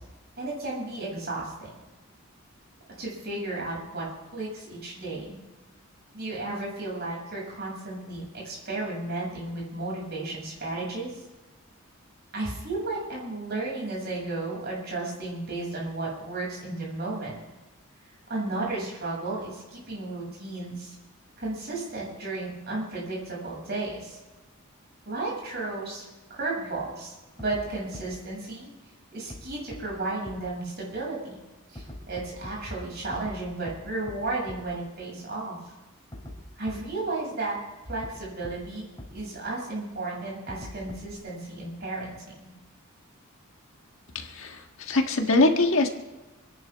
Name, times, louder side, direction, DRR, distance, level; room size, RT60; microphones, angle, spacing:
voice 1, 0.4-1.7 3.0-4.1 4.3-5.4 6.1-11.2 12.3-17.4 18.3-20.9 21.4-24.2 25.0-26.0 26.3-28.7 29.1-31.4 31.7-35.6 36.6-37.6 37.9-38.9 39.1-42.5, right 2 dB, 50° right, -3 dB, 6.9 m, -33 dB
sound 1, 27.4-27.6 27.9-28.0 29.3-29.4 29.7-29.8 30.2-30.3 31.7-32.5 33.1-33.3 33.7-33.8 34.1-34.2 34.5-34.6 36.1-36.3 36.7-36.8 38.0-38.1 38.4-38.5 39.0-39.1 40.5-41.2, left 1 dB, 20° left, 3.8 m, -40 dB
voice 2, 44.1-45.9, left 2 dB, 65° left, 4 dB, 1.7 m, -23 dB
27.5 x 11.0 x 3.6 m, 1.1 s
head